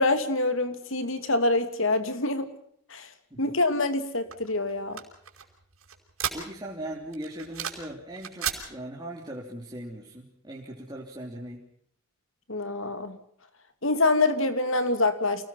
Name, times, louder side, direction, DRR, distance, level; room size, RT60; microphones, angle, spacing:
voice 1, 0.0-2.5 2.9-3.1 3.4-5.0 12.5-13.2 13.8-15.5, left 2 dB, 60° left, 9 dB, 2.7 m, -25 dB
sound 1, 4.3-6.8 7.1-8.6, right 9 dB, 70° right, 5.3 m, -34 dB
voice 2, 6.3-11.7, right 1 dB, 20° right, -4 dB, 3.4 m, -39 dB
29.0 x 19.5 x 5.7 m, 0.65 s
head